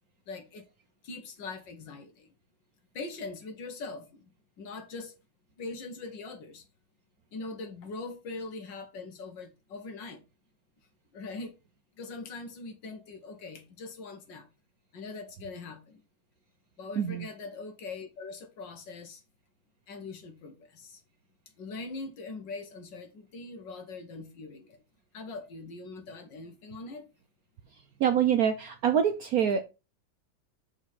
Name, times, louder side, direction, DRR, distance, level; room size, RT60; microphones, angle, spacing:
voice 1, 0.3-0.6 1.0-2.3 2.9-4.3 4.6-5.2 5.6-6.7 7.3-10.2 11.1-11.5 12.0-14.5 14.9-16.0 16.8-19.2 19.9-21.0 21.6-24.8 25.1-27.1, left 3 dB, 65° left, 1.9 m, -42 dB
voice 2, 17.0-17.3 27.7-29.6, right 8 dB, 70° right, 0.9 m, -26 dB
6.4 x 5.0 x 4.0 m
omnidirectional pair, 2.1 m